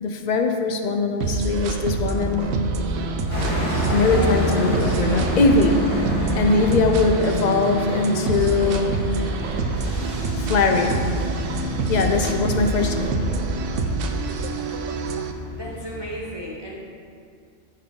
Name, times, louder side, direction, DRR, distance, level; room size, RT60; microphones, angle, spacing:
voice 1, 0.0-2.5 3.9-5.9 6.3-9.1 10.4-11.1 11.9-13.2, left 3 dB, 55° left, 5 dB, 0.5 m, -21 dB
sound 1, 1.2-15.3, right 3 dB, 90° right, 0.9 m, -26 dB
sound 2, 3.3-16.2, right 1 dB, 30° left, 1.3 m, -30 dB
voice 2, 15.5-16.8, right 1 dB, 25° right, -4 dB, 0.7 m, -34 dB
8.5 x 5.6 x 3.7 m, 2.3 s
omnidirectional pair, 1.2 m